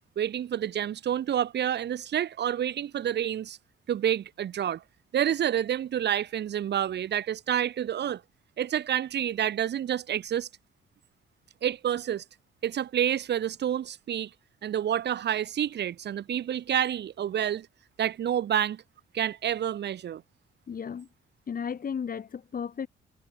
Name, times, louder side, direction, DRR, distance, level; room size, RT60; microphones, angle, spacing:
voice 1, 0.2-3.6 3.9-4.8 5.1-8.2 8.6-10.5 11.6-12.2 12.6-14.3 14.6-17.7 18.0-18.8 19.1-20.2, right 10 dB, 60° right, 1.4 m, -28 dB
voice 2, 20.7-21.1 21.5-22.9, left 7 dB, 45° left, 3.8 m, -34 dB
cardioid pair, 90°, 20 cm